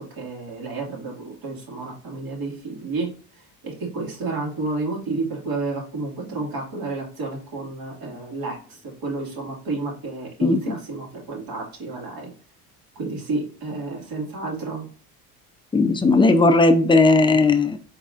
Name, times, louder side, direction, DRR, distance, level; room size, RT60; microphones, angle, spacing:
voice 1, 0.0-12.3 13.0-14.9, right 3 dB, 60° right, -2 dB, 2.2 m, -31 dB
voice 2, 10.4-10.8 15.7-17.8, left 3 dB, 10° left, 7 dB, 0.5 m, -17 dB
4.0 x 4.0 x 2.5 m, 0.41 s
supercardioid pair, 90°, 40 cm